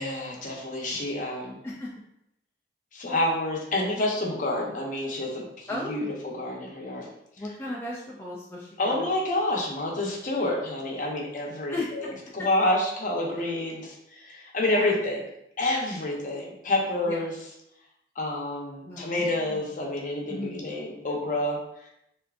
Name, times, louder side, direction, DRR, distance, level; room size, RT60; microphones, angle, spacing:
voice 1, 0.0-1.6 2.9-7.1 8.8-12.1 12.3-15.2 15.6-17.4 18.2-21.9, left 1 dB, 45° left, -2 dB, 0.7 m, -28 dB
voice 2, 5.7-6.1 7.4-9.1 11.7-11.9 14.7-15.0 17.1-17.2 18.8-19.7 20.3-20.7, left 2 dB, 15° left, -5 dB, 0.3 m, -36 dB
3.5 x 2.6 x 2.4 m, 0.80 s
head